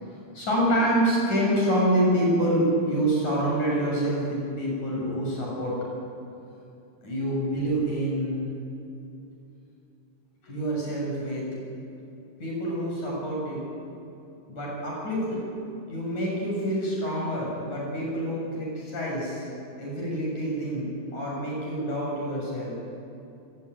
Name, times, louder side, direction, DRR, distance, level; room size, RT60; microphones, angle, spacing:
voice 1, 0.3-5.8 7.0-8.4 10.4-11.5 12.4-13.6 14.5-15.5 15.9-19.5 19.8-22.7, right 1 dB, 50° left, -3 dB, 8.4 m, -27 dB
26.5 x 18.5 x 9.5 m, 2.7 s
omnidirectional pair, 4.5 m